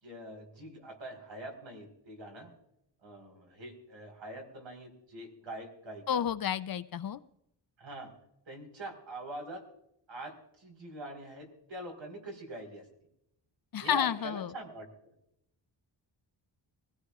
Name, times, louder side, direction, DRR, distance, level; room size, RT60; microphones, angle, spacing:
voice 1, 0.0-2.5 3.0-6.2 7.8-8.1 8.5-9.6 10.1-12.9 13.8-15.1, right 1 dB, 75° right, 3 dB, 4.3 m, -44 dB
voice 2, 6.1-7.2 13.7-14.5, left 9 dB, 50° left, 14 dB, 0.5 m, -30 dB
24.0 x 16.5 x 2.4 m, 0.78 s
wide cardioid pair, 145°, 46 cm